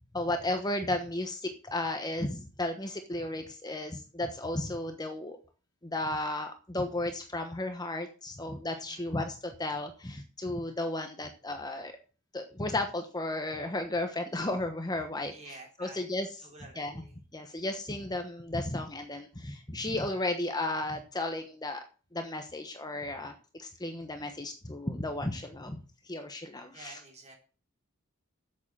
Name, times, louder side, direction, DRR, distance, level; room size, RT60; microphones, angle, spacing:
voice 1, 0.1-5.4 5.8-11.9 12.3-16.3 16.8-17.0 17.3-21.8 22.1-27.0, left 2 dB, 20° left, 6 dB, 1.1 m, -34 dB
voice 2, 8.7-9.1 15.3-16.0 16.4-17.1 26.7-27.3, right 3 dB, 30° right, 1 dB, 3.6 m, -50 dB
8.7 x 7.7 x 7.4 m, 0.38 s
head